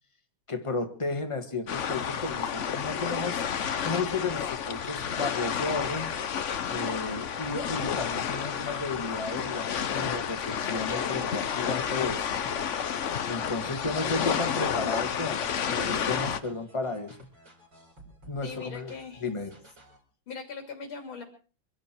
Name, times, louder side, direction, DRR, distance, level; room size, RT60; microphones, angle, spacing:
voice 1, 0.5-3.4 3.8-6.1 6.7-12.5 12.8-12.9 13.3-17.3 18.3-18.9 19.2-19.5, left 3 dB, 15° left, 6 dB, 1.8 m, -33 dB
sound 1, 1.7-16.4, left 7 dB, 55° left, 0.8 m, -31 dB
sound 2, 3.6-20.0, right 2 dB, 55° right, 6.0 m, -54 dB
voice 2, 18.4-19.2 20.3-21.2, left 5 dB, 70° left, 3 dB, 3.7 m, -40 dB
25.0 x 12.0 x 4.5 m, 0.38 s
omnidirectional pair, 2.3 m